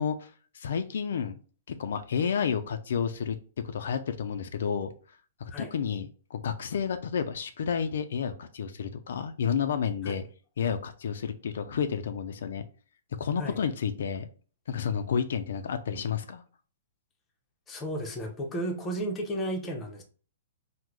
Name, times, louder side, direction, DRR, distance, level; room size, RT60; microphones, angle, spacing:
voice 1, 0.0-1.4 1.7-3.4 3.6-4.9 5.4-10.2 10.6-12.6 13.2-14.3 14.7-16.4, left 7 dB, 70° left, 8 dB, 0.3 m, -31 dB
voice 2, 17.7-20.0, right 1 dB, 15° left, 2 dB, 0.6 m, -33 dB
3.6 x 2.1 x 3.0 m, 0.39 s
hypercardioid pair, 160°, 0 cm